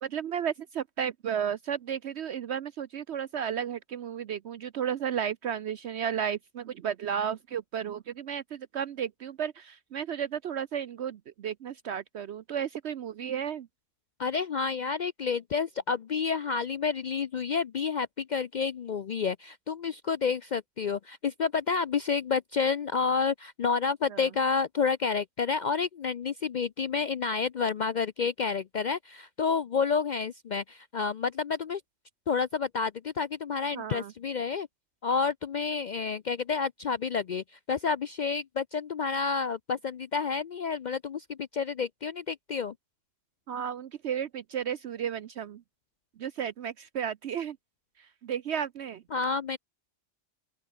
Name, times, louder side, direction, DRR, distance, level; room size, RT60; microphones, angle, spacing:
voice 1, 0.0-13.7 24.1-24.3 33.7-34.1 43.5-45.6 46.2-47.6 48.0-49.0, right 8 dB, 65° right, 0.9 m, -33 dB
voice 2, 14.2-31.8 32.3-34.7 35.0-42.7 49.1-49.6, left 5 dB, 60° left, 0.5 m, -29 dB
open air
omnidirectional pair, 1.3 m